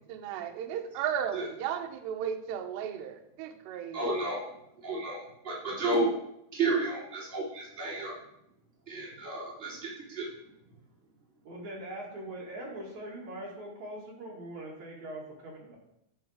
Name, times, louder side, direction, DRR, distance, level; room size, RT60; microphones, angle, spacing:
voice 1, 0.0-4.1, right 9 dB, 80° right, 5 dB, 2.5 m, -35 dB
voice 2, 3.9-4.4 4.7-6.2 6.5-8.1 8.9-10.3, right 2 dB, 15° right, -7 dB, 2.5 m, -32 dB
voice 3, 11.4-15.8, right 1 dB, 50° right, -3 dB, 2.3 m, -42 dB
12.0 x 4.1 x 6.4 m, 0.80 s
omnidirectional pair, 6.0 m